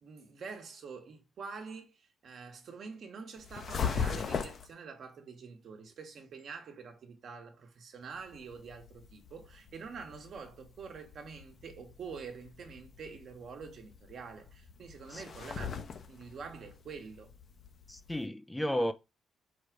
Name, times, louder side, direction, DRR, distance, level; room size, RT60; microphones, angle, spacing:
voice 1, 0.0-17.4, right 5 dB, 60° right, 1.3 m, -46 dB
sound 1, 3.4-4.7 8.2-18.3, left 6 dB, 50° left, 0.7 m, -40 dB
voice 2, 17.9-18.9, equal, 10° left, 0.4 m, -33 dB
4.8 x 2.4 x 4.5 m
cardioid pair, 90°, 0 cm